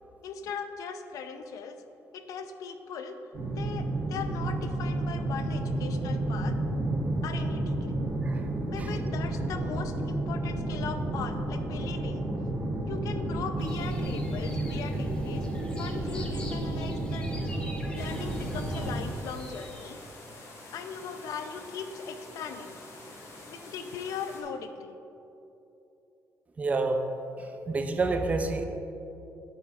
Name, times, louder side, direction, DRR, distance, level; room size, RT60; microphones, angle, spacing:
voice 1, 0.2-1.8 2.1-3.2 3.6-6.6 7.2-8.0 8.7-12.3 12.9-15.4 15.8-17.3 17.9-20.0 20.7-22.8 23.5-25.0, left 6 dB, 75° left, 8 dB, 0.6 m, -39 dB
sound 1, 3.3-19.0, right 1 dB, 45° right, 1.4 m, -31 dB
sound 2, 13.6-19.9, left 1 dB, 15° left, 0.9 m, -47 dB
sound 3, 17.9-24.4, left 2 dB, 55° left, 2.1 m, -47 dB
voice 2, 26.6-27.0 27.7-28.6, right 3 dB, 25° right, 6 dB, 0.6 m, -27 dB
9.1 x 7.2 x 4.2 m, 2.9 s
cardioid pair, 170°, 6 cm